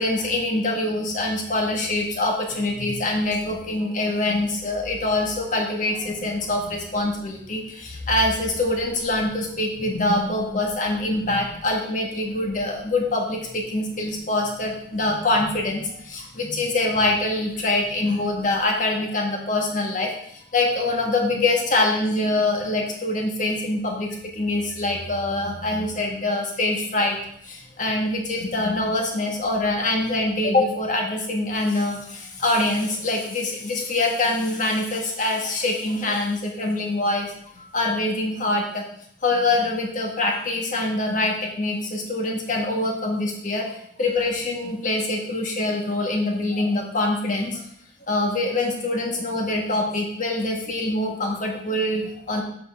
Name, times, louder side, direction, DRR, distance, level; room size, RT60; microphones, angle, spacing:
voice 1, 0.0-20.1 20.5-27.2 27.4-37.3 37.6-38.8 39.2-43.7 44.0-47.6 48.1-52.4, left 2 dB, 40° left, 1 dB, 1.6 m, -24 dB
7.6 x 7.6 x 3.6 m, 0.70 s
head